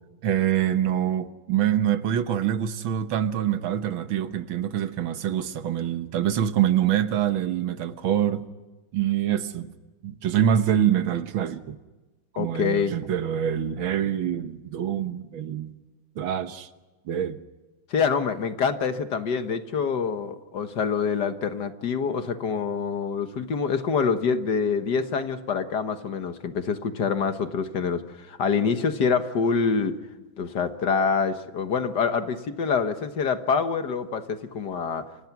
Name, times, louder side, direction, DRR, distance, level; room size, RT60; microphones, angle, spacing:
voice 1, 0.2-8.5 8.9-9.7 10.0-11.8 12.4-15.8 16.2-16.7 17.1-17.4, right 10 dB, 80° right, 1.9 m, -25 dB
voice 2, 12.4-13.0 17.9-30.0 30.4-35.1, left 5 dB, 60° left, 1.8 m, -26 dB
29.5 x 25.0 x 6.1 m
omnidirectional pair, 2.2 m